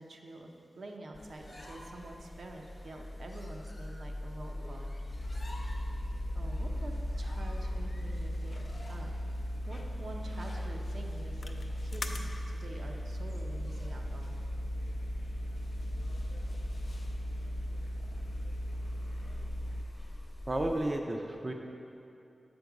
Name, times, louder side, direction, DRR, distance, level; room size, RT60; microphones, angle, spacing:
voice 1, 0.0-4.9 6.3-8.6 8.9-14.4, right 2 dB, 70° right, 1 dB, 0.6 m, -47 dB
sound 1, 1.1-20.9, left 1 dB, 40° left, 0.9 m, -43 dB
sound 2, 5.0-19.9, equal, 55° left, 0.4 m, -37 dB
voice 2, 20.5-21.5, right 1 dB, 25° right, 2 dB, 0.4 m, -32 dB
7.0 x 5.3 x 4.7 m, 2.7 s
wide cardioid pair, 135°, 0 cm